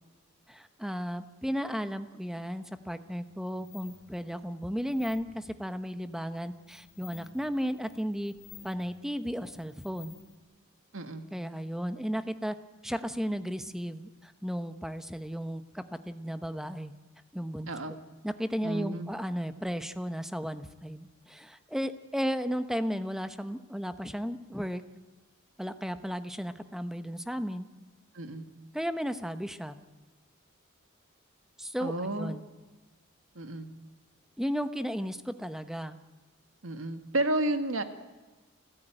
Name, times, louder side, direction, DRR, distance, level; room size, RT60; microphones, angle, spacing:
voice 1, 0.5-8.3 8.6-10.2 11.3-12.6 12.8-16.9 17.3-17.9 18.2-24.8 25.6-27.7 28.7-29.8 31.6-32.4 34.4-36.0, equal, ahead, 10 dB, 1.0 m, -34 dB
sound 1, 3.0-10.4, left 7 dB, 50° left, 6.1 m, -54 dB
voice 2, 10.9-11.2 17.6-17.9 18.6-19.1 28.1-28.5 31.8-32.3 33.4-33.7 36.6-37.8, right 1 dB, 80° right, 8 dB, 1.8 m, -31 dB
29.0 x 15.5 x 9.0 m, 1.2 s
head